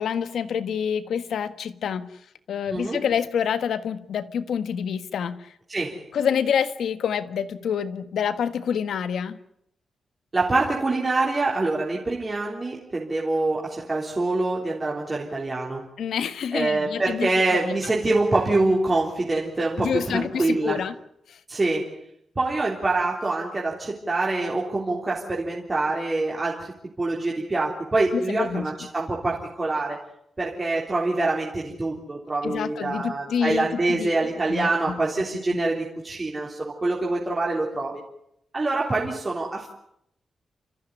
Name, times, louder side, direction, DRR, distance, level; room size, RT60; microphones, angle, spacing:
voice 1, 0.0-2.1 2.5-5.5 6.1-9.4 16.0-17.9 19.8-20.9 21.3-21.4 28.1-28.7 32.4-34.2 34.5-35.0 35.5-35.6, left 7 dB, 80° left, 12 dB, 1.5 m, -27 dB
voice 2, 5.7-6.0 10.3-15.9 16.5-20.8 21.5-22.0 22.4-26.7 27.0-30.0 30.4-38.0 38.5-39.7, right 2 dB, 20° right, -3 dB, 3.6 m, -25 dB
30.0 x 14.5 x 9.8 m, 0.76 s
wide cardioid pair, 155°, 0 cm